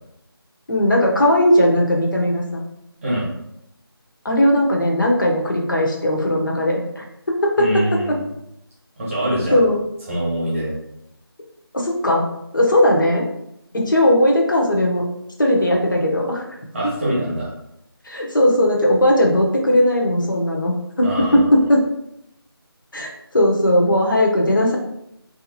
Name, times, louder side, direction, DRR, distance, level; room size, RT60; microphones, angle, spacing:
voice 1, 0.7-2.6 4.2-8.2 9.5-9.8 11.7-12.3 12.5-13.3 13.7-15.0 15.4-16.4 17.0-17.1 18.0-21.8 22.9-24.8, left 1 dB, 55° left, -1 dB, 1.2 m, -18 dB
voice 2, 3.0-3.3 7.6-8.1 9.0-9.6 10.1-10.7 16.7-17.5 21.0-21.4, right 1 dB, 5° right, -8 dB, 1.3 m, -24 dB
3.4 x 2.9 x 4.1 m, 0.80 s
figure-of-eight pair, 175°, 13 cm